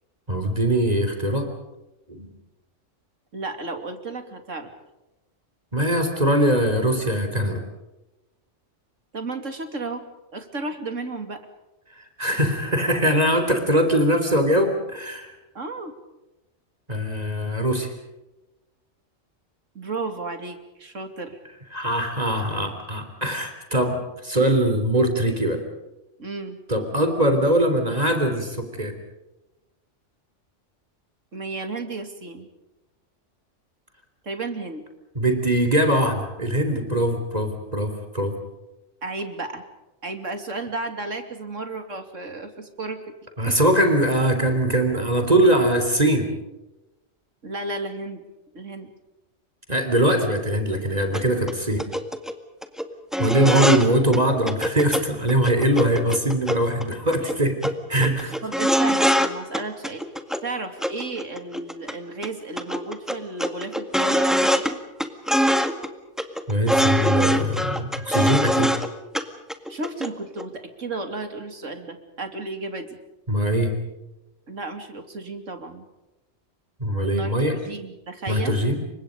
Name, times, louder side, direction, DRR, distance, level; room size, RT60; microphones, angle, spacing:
voice 1, 0.3-1.5 2.1-2.3 5.7-7.6 12.2-15.3 16.9-17.9 21.7-25.6 26.7-29.0 35.2-38.4 43.4-46.3 49.7-51.9 53.2-58.3 66.5-68.7 73.3-73.8 76.8-77.6 78.3-78.8, right 1 dB, 30° right, 6 dB, 3.6 m, -22 dB
voice 2, 3.3-4.7 9.1-10.0 10.3-11.4 15.5-15.9 19.7-21.4 26.2-26.6 31.3-32.5 34.2-34.8 39.0-39.6 40.0-43.0 43.5-43.6 47.4-48.2 48.5-48.9 51.3-51.4 53.5-53.7 58.4-60.0 60.4-64.8 69.7-72.9 74.5-75.9 77.1-78.6, right 3 dB, 85° right, 7 dB, 3.2 m, -33 dB
sound 1, 51.1-51.2 51.5-51.6 51.8-52.3 52.6-52.8 53.1-53.9 54.1-54.2 54.5-55.0 55.3-56.8 57.1-57.4 57.6-57.7 58.0-59.3 59.5-60.4 60.8-61.9 62.2-62.3 62.6-64.7 65.0-65.9 66.2-68.9 69.1-69.2 69.5-70.1 70.4-70.5, equal, ahead, 1.8 m, -23 dB
29.5 x 25.0 x 5.2 m, 1.0 s
omnidirectional pair, 1.3 m